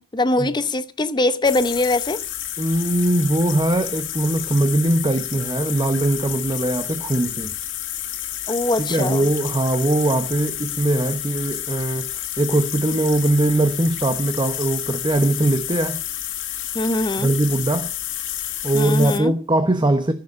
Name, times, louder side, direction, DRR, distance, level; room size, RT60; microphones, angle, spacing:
voice 1, 0.1-2.2 8.5-9.3 16.7-17.3 18.7-19.4, left 2 dB, 20° left, 0.8 m, -22 dB
sound 1, 1.4-19.2, left 11 dB, 60° left, 2.0 m, -30 dB
voice 2, 2.6-7.5 8.8-16.0 17.2-17.9 18.6-20.1, right 1 dB, 20° right, 0.9 m, -21 dB
15.5 x 6.7 x 8.5 m
head